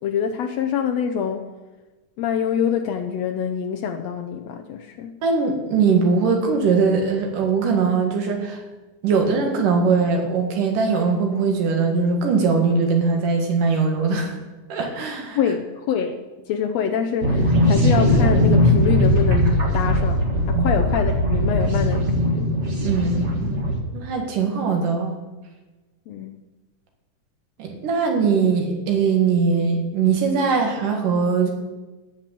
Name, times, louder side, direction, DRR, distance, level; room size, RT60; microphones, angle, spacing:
voice 1, 0.0-1.6 2.2-5.1 15.3-22.5 26.1-26.4, left 7 dB, 75° left, 6 dB, 1.6 m, -25 dB
voice 2, 5.2-8.6 9.0-14.3 14.7-15.4 20.5-20.7 22.8-23.7 23.9-25.1 27.6-31.5, right 5 dB, 85° right, 2 dB, 3.5 m, -21 dB
sound 1, 17.2-23.8, left 1 dB, 35° right, 1.3 m, -19 dB
13.5 x 6.1 x 9.1 m, 1.2 s
omnidirectional pair, 3.6 m